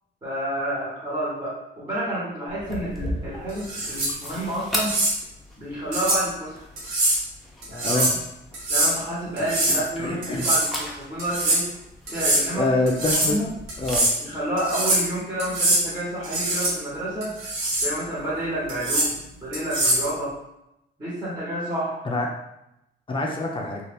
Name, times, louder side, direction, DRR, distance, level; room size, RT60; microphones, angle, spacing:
voice 1, 0.2-5.0 5.6-6.7 7.7-8.0 8.7-11.7 12.1-12.7 13.1-13.5 14.2-17.4 17.8-20.4 21.0-22.0, right 1 dB, 20° right, -9 dB, 1.2 m, -29 dB
sound 1, 2.5-14.0, equal, ahead, 0.8 m, -37 dB
sound 2, 3.6-4.1 4.8-5.1 5.9-6.2 6.8-7.2 7.6-8.2 8.5-8.9 9.4-9.8 10.2-10.7 11.2-11.6 12.1-12.4 12.9-13.3 13.7-14.1 14.6-15.1 15.4-15.8 16.2-16.7 17.2-17.9 18.7-19.1 19.5-20.1, right 1 dB, 90° right, 1.0 m, -23 dB
voice 2, 9.7-10.4 12.5-13.4 13.8-14.1 22.0-22.3 23.1-23.8, left 2 dB, 25° left, -1 dB, 0.5 m, -25 dB
2.7 x 2.4 x 3.4 m, 0.85 s
cardioid pair, 90°, 20 cm